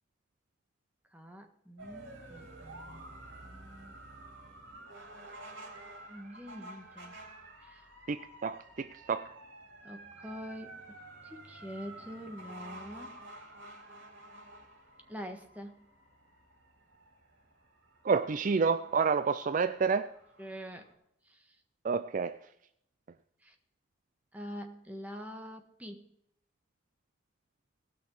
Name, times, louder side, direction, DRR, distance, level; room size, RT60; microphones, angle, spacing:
voice 1, 1.1-3.0 3.4-3.9 6.1-7.2 7.6-7.9 9.8-13.2 15.1-15.8 20.4-20.9 21.2-21.6 23.4-23.6 24.3-26.0, equal, 10° right, 1.4 m, -45 dB
sound 1, 1.8-20.9, right 1 dB, 80° right, 3.5 m, -51 dB
voice 2, 8.1-9.3 18.0-20.1 21.8-22.4, right 5 dB, 45° right, 0.4 m, -29 dB
19.0 x 6.3 x 4.7 m
head